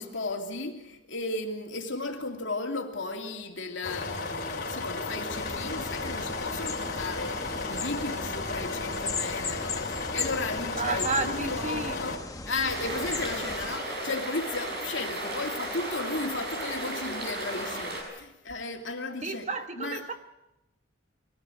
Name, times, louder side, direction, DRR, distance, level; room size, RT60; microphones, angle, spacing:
voice 1, 0.0-12.2 12.5-19.5 19.8-20.0, left 3 dB, 70° left, 2.8 m, -35 dB
sound 1, 3.8-12.2, left 3 dB, 55° left, 3.7 m, -34 dB
sound 2, 5.3-13.8, left 3 dB, 20° left, 1.2 m, -38 dB
voice 2, 10.8-12.0 19.2-20.1, right 3 dB, 35° right, 1.3 m, -31 dB
sound 3, 12.7-18.0, right 1 dB, 55° right, 6.8 m, -34 dB
23.0 x 17.5 x 8.0 m
head